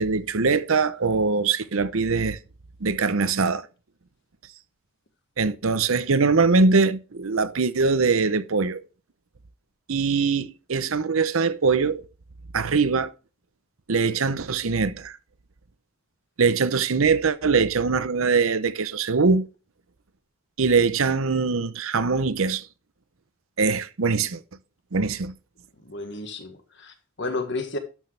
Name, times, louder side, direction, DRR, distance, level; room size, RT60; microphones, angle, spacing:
voice 1, 0.0-2.4 2.8-3.7 5.4-8.8 9.9-12.1 12.5-13.1 13.9-15.2 16.4-19.4 20.6-22.7 23.6-24.4 24.9-25.3, right 4 dB, 70° right, 0.7 m, -22 dB
voice 2, 25.8-27.8, left 2 dB, 55° left, 1.5 m, -32 dB
12.0 x 6.3 x 3.3 m
head